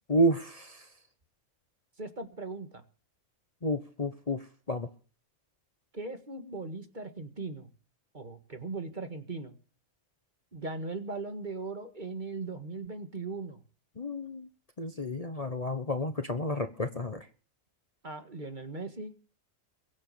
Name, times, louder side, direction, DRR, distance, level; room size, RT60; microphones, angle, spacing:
voice 1, 0.1-0.8 3.6-4.4 4.7-4.9 14.0-14.5 14.8-17.2, equal, 30° left, 8 dB, 1.0 m, -30 dB
voice 2, 2.0-2.8 5.9-7.7 8.1-9.5 10.5-13.6 16.5-16.7 18.0-19.2, right 3 dB, 35° right, 7 dB, 1.9 m, -39 dB
22.5 x 7.9 x 6.9 m, 0.39 s
omnidirectional pair, 1.4 m